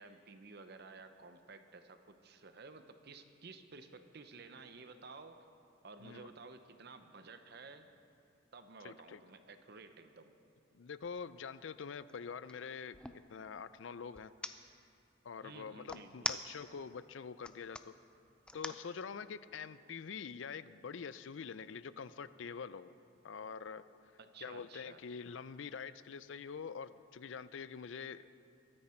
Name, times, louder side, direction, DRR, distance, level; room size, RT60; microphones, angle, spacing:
voice 1, 0.0-5.4 5.8-7.9 8.5-10.3 15.4-16.4 24.2-25.0, right 4 dB, 55° right, 8 dB, 0.7 m, -53 dB
voice 2, 8.8-9.2 10.7-14.3 15.2-17.9 18.5-22.9 23.2-23.8 24.4-28.3, left 6 dB, 70° left, 15 dB, 0.4 m, -45 dB
sound 1, 11.0-11.2 11.7-13.2 14.1-14.5 15.9-16.9 17.3-17.8 18.5-18.8, left 2 dB, 5° left, 0.4 m, -41 dB
22.5 x 9.8 x 4.4 m, 2.5 s
head